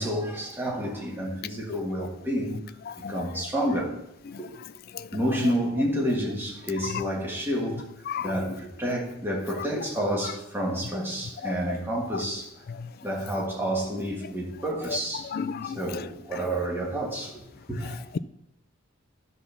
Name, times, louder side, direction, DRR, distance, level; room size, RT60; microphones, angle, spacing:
voice 1, 0.0-2.6 2.9-3.9 4.4-4.5 5.1-7.8 8.2-12.5 13.0-15.3 15.6-17.4 17.7-18.0, equal, 10° right, 1.8 m, -29 dB
voice 2, 15.3-15.8, left 7 dB, 45° left, 0.3 m, -31 dB
10.0 x 4.0 x 6.9 m
head